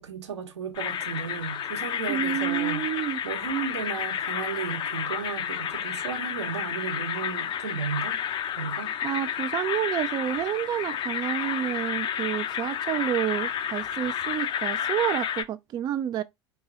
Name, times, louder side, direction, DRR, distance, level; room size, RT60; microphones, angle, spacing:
voice 1, 0.0-2.9 3.2-8.2 8.5-8.9, right 7 dB, 70° right, 1.0 m, -34 dB
sound 1, 0.8-15.4, left 9 dB, 30° left, 0.5 m, -31 dB
voice 2, 2.1-3.2 9.0-16.2, right 11 dB, 30° right, 0.3 m, -29 dB
4.5 x 2.9 x 3.6 m
figure-of-eight pair, 75°, 15 cm